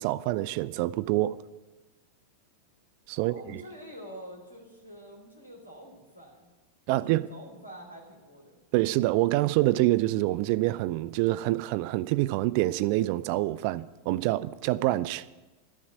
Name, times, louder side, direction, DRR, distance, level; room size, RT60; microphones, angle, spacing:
voice 1, 0.0-1.4 3.1-3.6 6.9-7.3 8.7-15.2, right 17 dB, 45° right, 0.4 m, -26 dB
voice 2, 3.1-6.5 6.9-8.6, equal, 90° left, 3.3 m, -46 dB
12.5 x 7.0 x 9.3 m
figure-of-eight pair, 90°, 0 cm